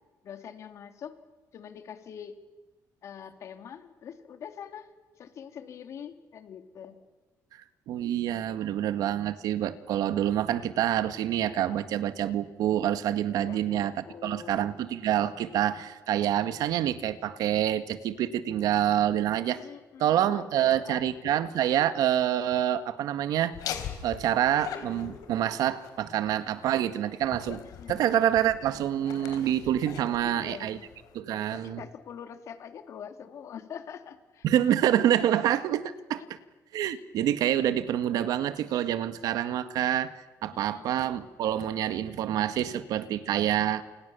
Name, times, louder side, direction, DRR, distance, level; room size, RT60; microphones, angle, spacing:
voice 1, 0.2-1.1 1.5-2.4 3.0-4.9 5.2-7.0 13.5-14.6 19.6-21.4 27.7-28.2 30.2-30.8 31.4-34.5 35.3-35.4 36.2-36.3 40.5-41.3, left 8 dB, 50° left, 8 dB, 2.7 m, -44 dB
voice 2, 7.9-19.7 20.0-23.5 24.0-27.6 27.9-30.8 31.1-31.8 34.4-36.2 36.7-40.1 40.4-43.8, right 11 dB, 75° right, 11 dB, 1.8 m, -27 dB
Laughter, 23.5-31.2, left 9 dB, 75° left, 3.8 m, -42 dB
30.0 x 28.5 x 7.1 m, 1.2 s
cardioid pair, 170°, 6 cm